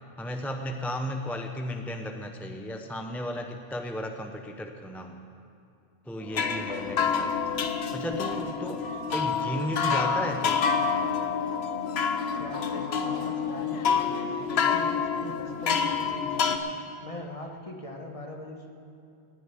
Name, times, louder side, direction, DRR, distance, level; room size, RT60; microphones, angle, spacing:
voice 1, 0.2-5.2 6.1-7.4 7.9-8.9 9.1-10.6, equal, ahead, 4 dB, 0.6 m, -34 dB
sound 1, 6.3-16.6, left 6 dB, 85° left, 1.1 m, -28 dB
voice 2, 12.4-16.8 17.0-18.7, left 1 dB, 35° left, 1 dB, 1.5 m, -41 dB
18.0 x 6.7 x 8.9 m, 2.6 s
omnidirectional pair, 1.0 m